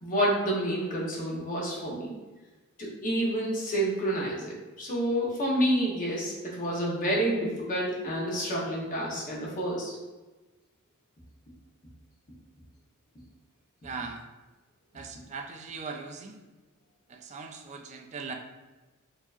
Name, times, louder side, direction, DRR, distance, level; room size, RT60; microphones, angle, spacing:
voice 1, 0.0-2.1 3.0-9.9, right 1 dB, 35° left, -4 dB, 0.9 m, -29 dB
voice 2, 13.8-14.2 14.9-16.4 17.1-18.3, right 4 dB, 30° right, 4 dB, 0.3 m, -39 dB
4.6 x 2.8 x 2.4 m, 1.2 s
head